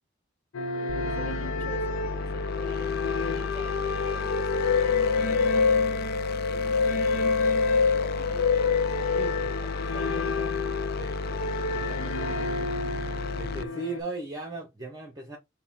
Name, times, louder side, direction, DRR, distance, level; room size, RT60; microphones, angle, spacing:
sound 1, 0.5-14.0, left 4 dB, 85° left, 0.7 m, -27 dB
sound 2, 0.9-13.6, left 4 dB, 50° left, 0.4 m, -35 dB
voice 1, 1.0-2.9 3.3-5.8 6.4-7.6 7.9-8.5 8.9-10.6, equal, 10° left, 2.1 m, -48 dB
voice 2, 9.2-9.5 11.0-12.5 13.4-15.4, right 2 dB, 20° right, 0.8 m, -38 dB
6.3 x 2.2 x 3.6 m
head